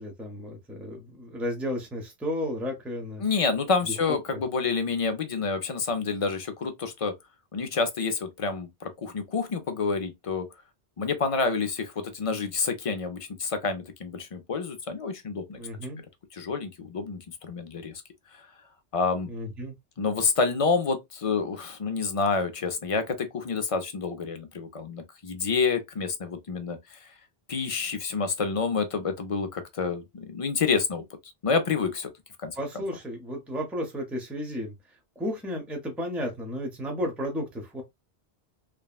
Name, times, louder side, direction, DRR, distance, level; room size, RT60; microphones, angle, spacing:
voice 1, 0.0-3.2 3.8-3.9 4.3-4.4 15.6-16.0 19.3-19.7 32.6-34.7 35.2-37.8, equal, ahead, 0.7 m, -33 dB
voice 2, 3.2-7.1 7.5-10.5 11.0-15.6 16.3-17.9 18.9-19.3 20.0-27.1 27.5-31.0 31.4-32.1 32.4-32.6, left 4 dB, 40° left, 0.5 m, -28 dB
3.4 x 2.1 x 2.3 m
omnidirectional pair, 1.1 m